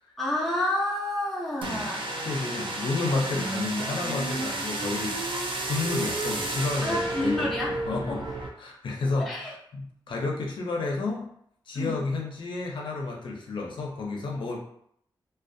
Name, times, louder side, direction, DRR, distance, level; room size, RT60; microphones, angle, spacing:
voice 1, 0.2-2.1 6.8-7.7 8.1-8.3 9.2-9.5 11.7-12.0, left 1 dB, ahead, -5 dB, 0.5 m, -29 dB
sound 1, 1.6-8.5, right 2 dB, 80° right, 0.4 m, -31 dB
voice 2, 2.2-5.2 5.7-8.2 8.6-11.3 11.7-14.6, left 3 dB, 70° left, -1 dB, 0.5 m, -31 dB
2.4 x 2.1 x 2.5 m, 0.68 s
wide cardioid pair, 170°, 8 cm